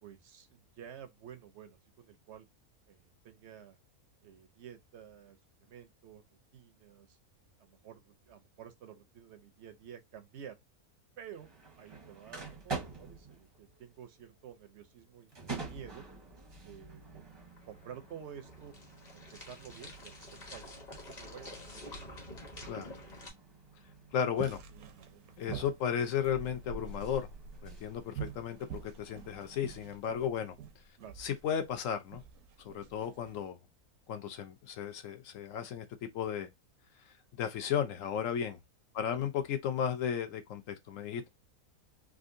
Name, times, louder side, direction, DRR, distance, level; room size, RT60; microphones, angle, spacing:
voice 1, 0.0-2.5 2.9-3.8 4.2-6.2 6.5-7.2 7.6-10.6 11.2-11.5 11.8-16.0 16.6-17.4 17.7-18.7 19.1-22.1 24.7-25.2 31.0-31.2 39.0-39.1, right 9 dB, 60° right, 0.8 m, -51 dB
sound 1, 11.3-30.0, right 4 dB, 25° right, 0.6 m, -48 dB
sound 2, 17.3-23.3, left 1 dB, 35° left, 1.1 m, -49 dB
voice 2, 24.1-24.6 25.4-27.3 27.6-30.6 31.2-32.2 32.6-33.6 34.1-35.8 36.1-36.5 37.4-38.6 38.9-41.3, left 8 dB, 65° left, 1.0 m, -34 dB
sound 3, 24.4-33.4, right 7 dB, 75° right, 1.1 m, -46 dB
3.7 x 2.5 x 2.5 m
omnidirectional pair, 1.5 m